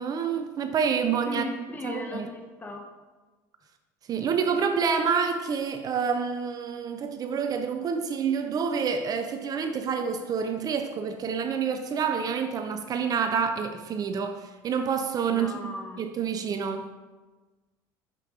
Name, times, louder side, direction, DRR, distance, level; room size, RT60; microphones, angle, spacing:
voice 1, 0.0-1.4 1.8-2.3 4.1-15.5 16.0-16.9, right 6 dB, 40° right, 7 dB, 0.6 m, -28 dB
voice 2, 1.3-2.9 15.3-16.0, left 2 dB, 20° left, 3 dB, 1.1 m, -37 dB
6.0 x 4.6 x 5.0 m, 1.3 s
supercardioid pair, 95°, 9 cm